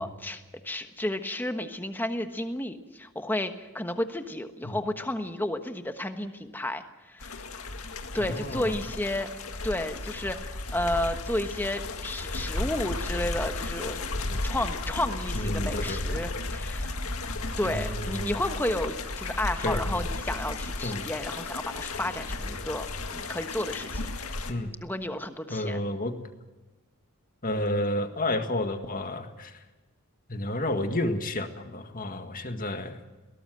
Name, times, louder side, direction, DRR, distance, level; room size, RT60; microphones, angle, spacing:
voice 1, 0.0-7.4 8.1-9.3 9.6-14.1 14.4-17.0 17.6-24.1 24.8-25.8, left 1 dB, 10° left, 7 dB, 1.2 m, -32 dB
sound 1, 7.2-24.5, left 2 dB, 80° left, 2.0 m, -34 dB
voice 2, 8.2-8.8 14.3-14.4 15.3-16.0 17.7-18.3 19.6-19.8 20.8-21.1 24.5-24.7 25.5-26.2 27.4-29.5 30.3-33.0, left 1 dB, 40° left, 6 dB, 1.8 m, -31 dB
21.0 x 18.0 x 7.8 m, 1.2 s
head